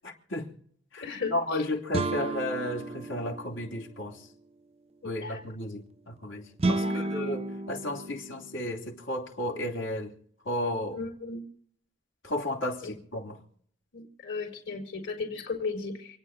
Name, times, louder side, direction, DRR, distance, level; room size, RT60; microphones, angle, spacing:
voice 1, 0.0-0.5 0.9-4.2 5.0-10.1 10.4-11.0 12.2-13.4, left 1 dB, 80° left, 3.4 m, -33 dB
voice 2, 1.0-1.4 5.0-5.4 6.8-7.1 10.9-11.4 12.8-12.9 13.9-16.2, left 4 dB, 60° left, 4.3 m, -35 dB
sound 1, 1.9-3.9 6.6-8.8, right 2 dB, 30° right, 0.6 m, -32 dB
28.5 x 9.6 x 3.8 m
head